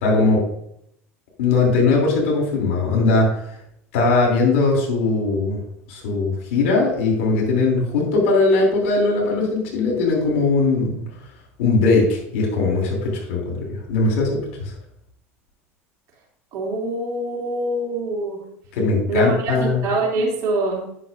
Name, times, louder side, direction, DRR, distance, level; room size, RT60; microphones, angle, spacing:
voice 1, 0.0-0.4 1.4-3.3 3.9-5.6 5.9-11.0 11.6-14.7 18.7-19.8, left 3 dB, 70° left, -1 dB, 2.9 m, -19 dB
voice 2, 16.5-18.5 19.1-20.9, right 2 dB, 50° right, -1 dB, 2.9 m, -24 dB
9.9 x 6.4 x 2.6 m, 0.73 s
hypercardioid pair, 80°, 7 cm